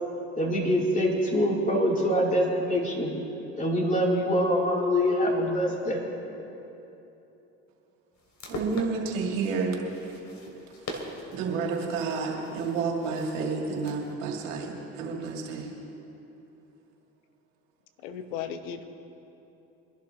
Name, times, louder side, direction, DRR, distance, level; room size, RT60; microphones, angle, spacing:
voice 1, 0.4-3.1 3.6-6.1, equal, 20° left, -2 dB, 3.2 m, -25 dB
sound 1, 8.2-14.1, left 1 dB, 45° left, 2.7 m, -42 dB
voice 2, 8.5-9.8 11.3-15.7, right 4 dB, 85° right, -1 dB, 2.2 m, -30 dB
voice 3, 18.0-18.9, left 8 dB, 85° left, 9 dB, 0.9 m, -35 dB
24.5 x 11.5 x 3.0 m, 3.0 s
hypercardioid pair, 65°, 37 cm